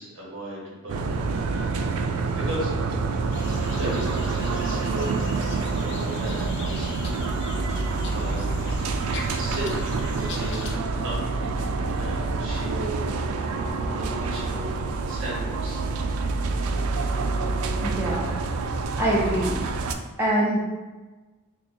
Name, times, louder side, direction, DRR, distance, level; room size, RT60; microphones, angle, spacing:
voice 1, 0.0-2.7 3.7-5.4 5.8-7.3 7.7-8.5 9.4-9.8 10.1-13.2 13.7-15.8, right 1 dB, 60° right, -5 dB, 1.4 m, -36 dB
sound 1, 0.9-19.9, right 3 dB, 75° right, 0.4 m, -27 dB
sound 2, 3.3-10.8, left 3 dB, 55° left, 0.5 m, -40 dB
voice 2, 17.8-18.6 19.0-19.6 20.2-20.6, right 1 dB, 10° right, -7 dB, 0.6 m, -24 dB
5.8 x 2.2 x 2.7 m, 1.2 s
head